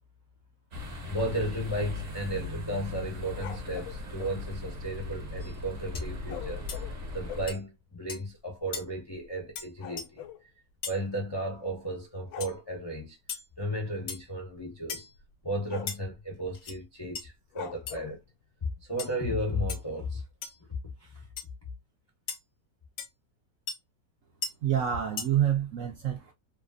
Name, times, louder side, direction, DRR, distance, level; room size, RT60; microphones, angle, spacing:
sound 1, 0.7-7.5, left 2 dB, 45° right, 0.9 m, -38 dB
voice 1, 1.0-10.3 10.9-13.2 13.6-15.1 15.4-18.2 18.8-20.2 21.0-21.3, equal, 40° left, 0.3 m, -34 dB
sound 2, 3.4-4.4 6.3-7.6 8.3-8.4 8.6-8.8 9.1-10.4 11.5-11.9 12.2-12.6 13.9-14.2 14.5-14.6 15.1-15.3 15.7-16.2 17.5-18.2, left 9 dB, 70° left, 0.9 m, -44 dB
sound 3, 5.4-5.6 5.9-6.1 6.7-6.8 7.5-7.6 8.1-8.3 8.7-8.8 9.5-9.7 10.0-10.1 10.8-11.0 12.4-12.5 13.3-13.5 14.1-14.3 14.9-15.1 15.9-16.0 16.5-16.8 17.1-17.2 17.9-18.0 19.0-19.2 19.7-19.8 20.4-20.6 21.4-21.5 22.3-22.4 23.0-23.1 23.7-23.8 24.4-24.5 25.2-25.3, left 6 dB, 90° left, 0.6 m, -37 dB
voice 2, 24.6-26.3, right 10 dB, 80° right, 0.7 m, -27 dB
2.9 x 2.3 x 2.4 m
omnidirectional pair, 1.9 m